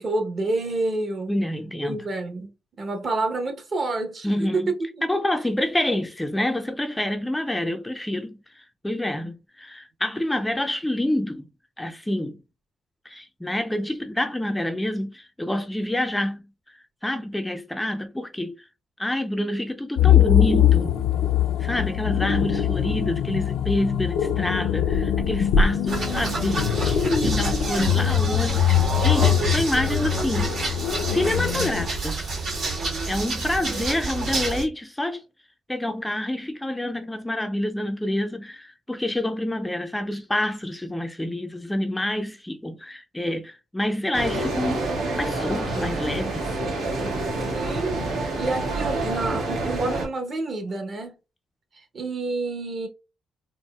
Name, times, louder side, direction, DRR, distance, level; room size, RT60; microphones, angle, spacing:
voice 1, 0.0-1.3 1.8-2.5 2.8-4.7 27.8-28.2 33.7-33.9 47.5-51.1 51.9-52.9, right 2 dB, 45° right, 0.8 m, -28 dB
voice 2, 1.3-2.0 4.2-4.7 5.1-11.4 11.8-12.4 13.1-16.4 16.7-18.6 19.0-20.9 21.6-30.5 31.1-32.3 33.1-35.2 35.7-44.9 45.2-46.6, left 1 dB, 10° left, 0.3 m, -27 dB
sound 1, 20.0-31.9, left 10 dB, 90° left, 0.4 m, -22 dB
sound 2, 25.9-34.6, right 3 dB, 65° right, 1.6 m, -28 dB
sound 3, 44.1-50.1, right 2 dB, 85° right, 1.2 m, -27 dB
4.1 x 2.0 x 2.3 m
cardioid pair, 90°, 0 cm